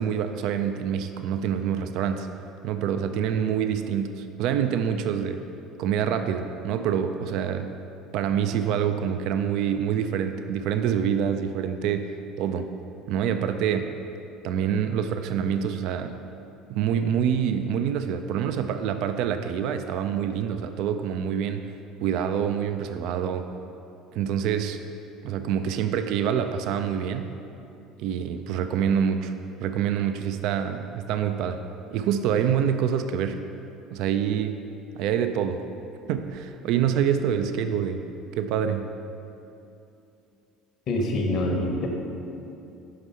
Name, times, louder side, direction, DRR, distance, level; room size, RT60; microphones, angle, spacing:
voice 1, 0.0-2.3 2.6-5.4 5.8-7.7 8.1-12.7 13.1-14.0 14.4-16.2 16.7-21.7 22.0-23.4 24.1-24.8 25.2-27.3 28.0-29.3 29.6-31.6 31.9-33.4 33.9-34.6 34.9-35.7 36.1-38.0 38.4-38.9, right 8 dB, 65° right, 8 dB, 0.3 m, -26 dB
voice 2, 40.9-41.9, left 1 dB, 50° left, 1 dB, 0.9 m, -25 dB
5.3 x 4.8 x 5.4 m, 2.7 s
hypercardioid pair, 65°, 0 cm